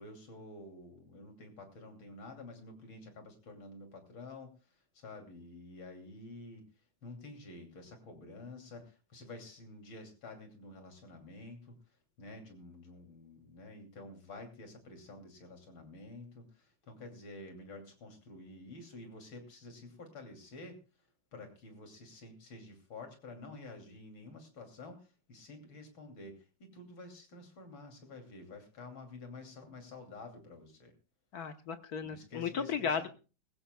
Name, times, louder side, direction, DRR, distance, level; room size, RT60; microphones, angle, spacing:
voice 1, 0.0-6.7 7.0-11.8 12.2-30.9 32.0-33.1, left 2 dB, 85° left, 5 dB, 3.6 m, -50 dB
voice 2, 31.3-33.1, left 6 dB, 55° left, 10 dB, 1.4 m, -35 dB
20.5 x 16.0 x 2.2 m, 0.33 s
omnidirectional pair, 2.1 m